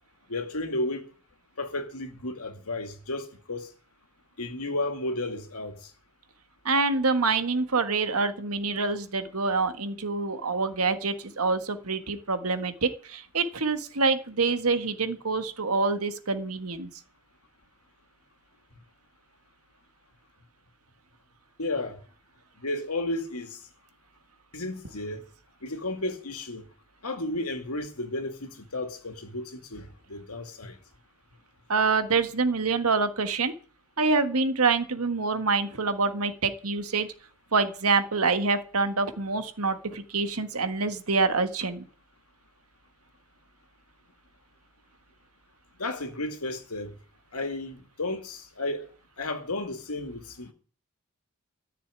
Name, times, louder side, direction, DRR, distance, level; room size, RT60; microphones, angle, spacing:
voice 1, 0.3-1.1 1.6-3.7 4.4-5.9 21.6-22.0 22.6-23.6 24.5-25.2 25.6-26.6 27.0-30.8 45.8-46.9 47.3-48.9 49.2-50.5, left 2 dB, 85° left, 2.3 m, -33 dB
voice 2, 6.6-16.9 31.7-33.5 34.0-37.1 37.5-41.8, right 4 dB, 85° right, 1.6 m, -26 dB
13.5 x 6.8 x 9.7 m
head